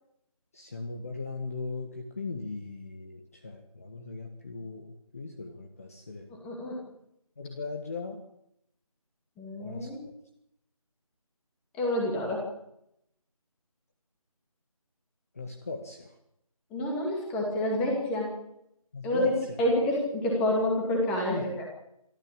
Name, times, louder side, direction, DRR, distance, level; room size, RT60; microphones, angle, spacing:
voice 1, 0.5-6.3 7.4-8.2 9.6-9.9 15.3-16.1 18.9-19.6 21.3-21.4, left 3 dB, 25° left, 4 dB, 1.4 m, -38 dB
voice 2, 6.3-6.8 9.4-10.0 11.8-12.4 16.7-18.3 19.0-19.3 19.6-21.6, left 1 dB, 5° left, -1 dB, 2.3 m, -28 dB
25.5 x 13.0 x 8.8 m, 0.78 s
figure-of-eight pair, 175°, 19 cm